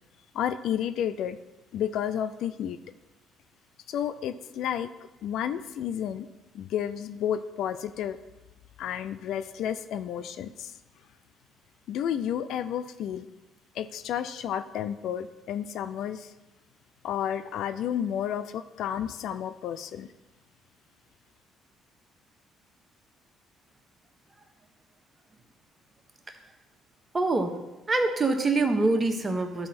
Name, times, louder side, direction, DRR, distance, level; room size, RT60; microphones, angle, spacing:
voice 1, 0.3-1.4 1.7-2.8 3.9-4.9 5.2-6.3 6.5-8.2 8.8-10.7 11.9-13.3 13.8-16.3 17.0-20.1, left 9 dB, 70° left, 12 dB, 0.4 m, -31 dB
voice 2, 27.1-27.5 27.9-29.7, right 3 dB, 30° right, 5 dB, 1.2 m, -24 dB
12.0 x 4.3 x 4.2 m, 1.0 s
supercardioid pair, 65°, 0 cm